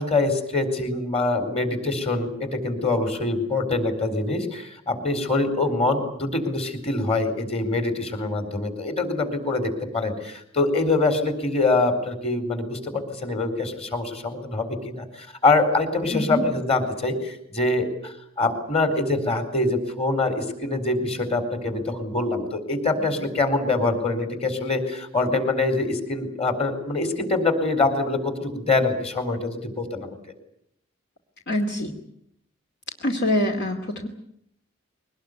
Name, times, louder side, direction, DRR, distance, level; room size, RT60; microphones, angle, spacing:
voice 1, 0.0-30.2, left 2 dB, 30° left, 8 dB, 4.3 m, -24 dB
voice 2, 16.1-16.5 31.5-31.9 33.0-34.1, left 1 dB, 60° left, 3 dB, 2.4 m, -25 dB
22.5 x 19.5 x 9.5 m, 0.73 s
head